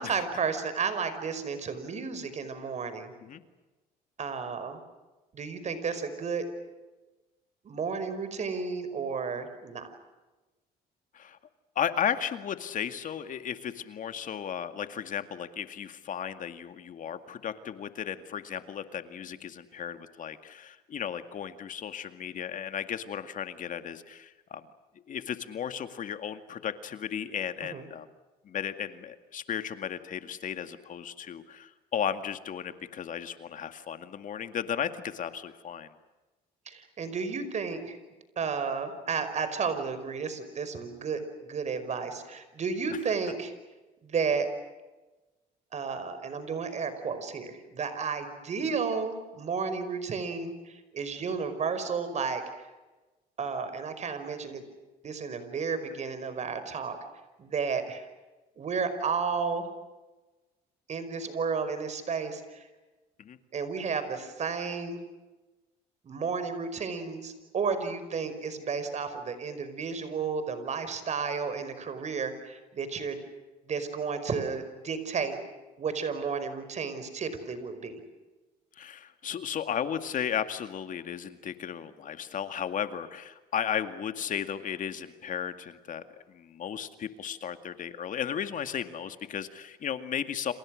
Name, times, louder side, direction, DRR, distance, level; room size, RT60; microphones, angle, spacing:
voice 1, 0.0-3.1 4.2-4.8 5.3-6.5 7.6-9.9 27.7-27.8 36.7-38.0 38.4-43.5 44.0-44.5 45.7-52.4 53.4-54.6 55.0-57.0 57.4-58.1 58.6-59.7 60.9-62.7 63.5-65.0 66.0-73.2 73.7-75.4 75.8-77.9, right 5 dB, 45° right, 10 dB, 5.3 m, -32 dB
voice 2, 11.8-24.6 25.1-28.1 28.4-35.9 63.2-63.4 78.8-90.5, left 8 dB, 50° left, 9 dB, 2.1 m, -35 dB
30.0 x 28.0 x 6.5 m, 1.2 s
cardioid pair, 110°, 17 cm